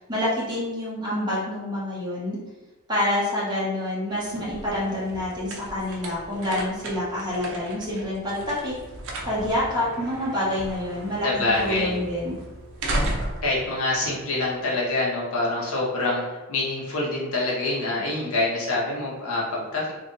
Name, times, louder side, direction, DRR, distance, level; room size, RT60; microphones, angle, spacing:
voice 1, 0.1-2.4 2.9-8.7 9.2-12.3, left 1 dB, 20° right, -8 dB, 1.4 m, -27 dB
sound 1, 4.1-14.8, right 1 dB, 60° right, 0.6 m, -35 dB
voice 2, 11.2-11.9 13.4-19.9, left 2 dB, 70° left, -5 dB, 1.0 m, -26 dB
3.0 x 2.5 x 3.9 m, 1.2 s
head